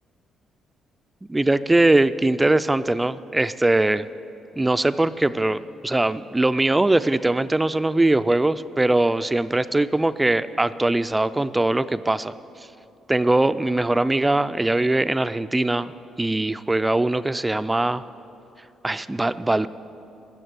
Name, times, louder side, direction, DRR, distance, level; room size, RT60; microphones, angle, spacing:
voice 1, 1.3-4.0 4.6-12.3 13.1-15.9 16.2-18.0 18.8-19.7, right 2 dB, 15° right, 13 dB, 0.3 m, -21 dB
12.5 x 7.3 x 9.4 m, 2.7 s
cardioid pair, 90°, 0 cm